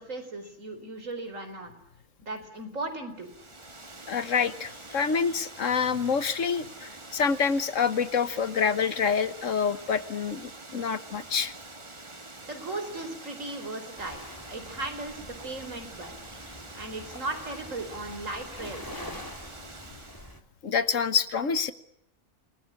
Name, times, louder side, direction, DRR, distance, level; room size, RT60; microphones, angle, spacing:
voice 1, 0.0-1.7 2.2-3.3 12.5-14.2 14.5-16.1 16.7-19.2, right 2 dB, 80° right, 7 dB, 5.0 m, -37 dB
Water, 3.2-20.4, right 2 dB, 25° right, 1.4 m, -46 dB
voice 2, 4.1-11.5 20.6-21.7, left 6 dB, 75° left, 12 dB, 1.6 m, -27 dB
Waves surf, 14.0-20.4, left 1 dB, 15° left, 2.6 m, -45 dB
28.0 x 19.5 x 9.8 m, 0.74 s
omnidirectional pair, 1.3 m